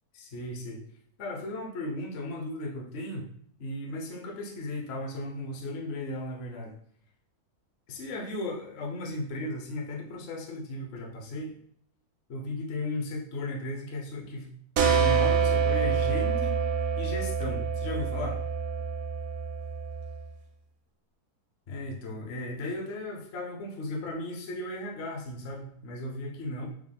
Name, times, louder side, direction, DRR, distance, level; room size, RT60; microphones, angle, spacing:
voice 1, 0.1-0.8 1.2-3.3 3.6-6.7 7.9-11.6 12.3-14.5 14.8-16.6 17.0-18.4 21.7-26.7, left 1 dB, 55° left, 0 dB, 0.7 m, -36 dB
sound 1, 14.8-20.2, right 6 dB, 70° right, 1.0 m, -27 dB
4.8 x 2.0 x 3.4 m, 0.65 s
omnidirectional pair, 1.6 m